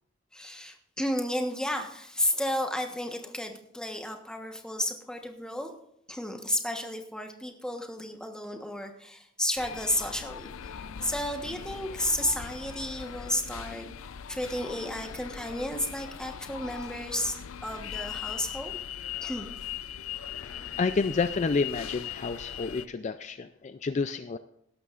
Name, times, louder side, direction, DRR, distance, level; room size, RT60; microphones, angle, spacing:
voice 1, 0.3-5.7 6.1-13.9 14.3-18.8 19.2-19.5, left 1 dB, 5° left, 4 dB, 1.2 m, -32 dB
sound 1, 9.6-22.9, left 9 dB, 90° left, 0.5 m, -40 dB
voice 2, 20.4-24.4, left 4 dB, 35° left, 11 dB, 0.4 m, -30 dB
17.0 x 12.5 x 2.5 m, 0.75 s
head